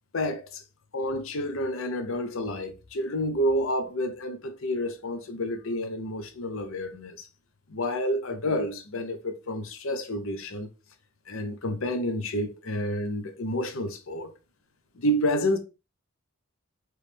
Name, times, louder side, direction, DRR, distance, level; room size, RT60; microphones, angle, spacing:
voice 1, 0.1-0.6 0.9-7.3 7.7-10.7 11.3-14.3 15.0-15.6, equal, 70° left, 0.7 m, -29 dB
4.7 x 3.1 x 3.4 m
head